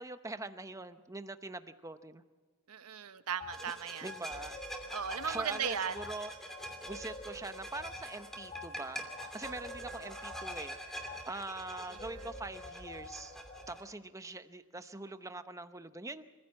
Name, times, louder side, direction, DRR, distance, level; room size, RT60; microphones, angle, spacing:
voice 1, 0.0-2.2 4.0-4.6 5.2-6.3 6.9-13.4 13.7-16.2, right 2 dB, 15° right, 10 dB, 0.7 m, -43 dB
voice 2, 2.7-4.1 4.9-6.0 11.9-12.3, right 7 dB, 80° right, 11 dB, 0.9 m, -37 dB
sound 1, 3.4-3.6 4.0-13.8, left 2 dB, 30° left, 2.7 m, -49 dB
sound 2, 3.5-13.8, right 1 dB, ahead, 2.7 m, -45 dB
26.5 x 15.5 x 7.5 m, 1.4 s
head